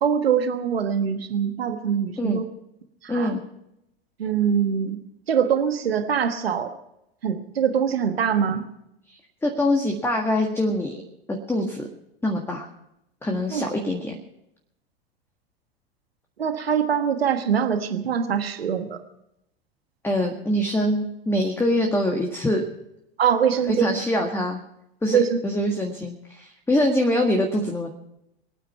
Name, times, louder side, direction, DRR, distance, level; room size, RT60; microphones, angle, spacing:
voice 1, 0.0-2.5 3.0-3.3 4.2-5.0 5.3-6.7 7.2-8.7 13.5-13.6 16.4-19.0 23.2-23.9 25.1-25.4, right 7 dB, 75° right, 8 dB, 1.4 m, -23 dB
voice 2, 3.1-3.4 9.1-11.0 11.5-11.8 12.2-12.7 13.2-14.1 20.0-22.6 23.7-24.6 25.0-27.9, left 1 dB, 10° left, 2 dB, 1.7 m, -24 dB
24.5 x 9.3 x 5.6 m, 0.83 s
figure-of-eight pair, 90°, 30 cm